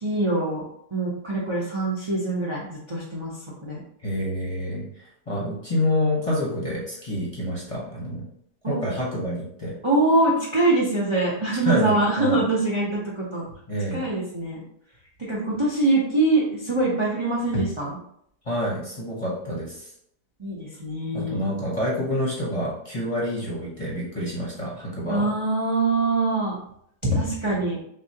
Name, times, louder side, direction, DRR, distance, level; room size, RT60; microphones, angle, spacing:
voice 1, 0.0-0.6 0.9-3.3 3.6-3.8 8.6-8.7 9.8-13.4 13.9-14.6 15.2-18.0 20.4-21.4 25.1-26.6 27.0-27.8, right 2 dB, 25° right, -6 dB, 0.6 m, -23 dB
voice 2, 4.0-4.8 5.3-8.2 8.6-9.8 11.6-12.4 13.7-14.1 18.4-19.9 21.1-25.3, equal, 25° left, -5 dB, 1.0 m, -27 dB
6.4 x 2.4 x 2.9 m, 0.70 s
omnidirectional pair, 1.8 m